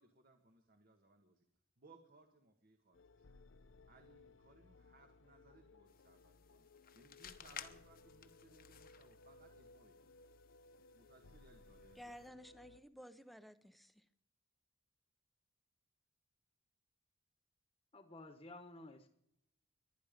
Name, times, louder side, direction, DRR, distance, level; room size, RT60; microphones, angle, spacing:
voice 1, 0.0-1.4 1.8-3.3 3.9-6.7 6.9-9.9 10.9-12.3, right 3 dB, 50° right, 1.6 m, -66 dB
sound 1, 2.9-12.8, left 2 dB, 75° left, 0.7 m, -62 dB
sound 2, 5.9-12.3, left 9 dB, 50° left, 1.1 m, -57 dB
voice 2, 11.9-14.0, equal, ahead, 0.9 m, -55 dB
voice 3, 17.9-19.1, left 2 dB, 30° left, 1.3 m, -53 dB
22.5 x 10.5 x 5.3 m
head